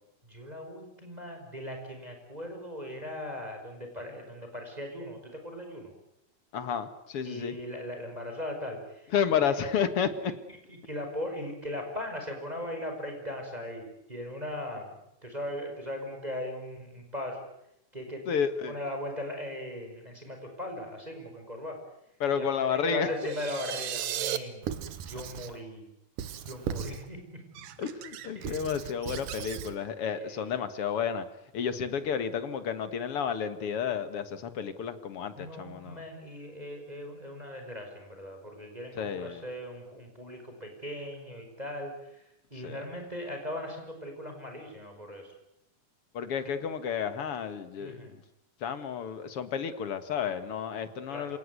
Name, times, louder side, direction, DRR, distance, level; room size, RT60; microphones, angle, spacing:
voice 1, 0.3-5.9 7.2-9.1 9.4-9.6 10.2-10.3 10.7-14.9 15.2-17.4 17.9-18.4 18.7-21.8 22.3-24.6 25.1-25.9 26.5-27.4 28.4-28.6 30.2-30.4 35.3-41.9 42.5-45.3 47.8-48.2 51.1-51.3, left 1 dB, 10° right, 3 dB, 5.4 m, -39 dB
voice 2, 6.5-7.6 9.1-10.3 18.3-18.8 22.2-23.1 27.8-31.2 31.5-36.0 39.0-39.4 42.6-42.8 46.1-48.0 48.6-51.4, left 7 dB, 55° left, 11 dB, 2.3 m, -31 dB
sound 1, 23.2-24.4, right 11 dB, 65° right, 2.3 m, -33 dB
Squeak / Writing, 24.6-25.6 26.2-27.1 27.5-29.8, right 9 dB, 85° right, 2.9 m, -38 dB
27.0 x 18.5 x 9.5 m, 0.81 s
omnidirectional pair, 3.6 m